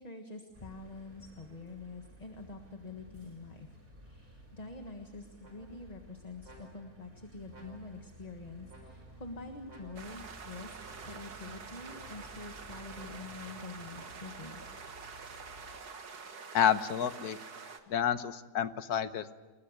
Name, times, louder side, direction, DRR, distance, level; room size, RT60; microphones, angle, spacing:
voice 1, 0.0-3.7 4.0-14.6, left 3 dB, 25° left, 5 dB, 1.6 m, -46 dB
sound 1, 0.5-15.8, right 1 dB, 30° right, 5.7 m, -55 dB
sound 2, 5.4-6.0 6.4-7.1 7.5-8.1 8.7-9.3 9.7-10.3 10.8-11.4 11.8-12.4 12.9-13.5, equal, 55° right, 5.2 m, -57 dB
sound 3, 10.0-17.8, right 5 dB, 85° right, 2.2 m, -47 dB
voice 2, 16.5-17.4 17.9-19.3, left 8 dB, 75° left, 12 dB, 1.5 m, -29 dB
29.0 x 20.5 x 6.6 m, 1.3 s
omnidirectional pair, 1.6 m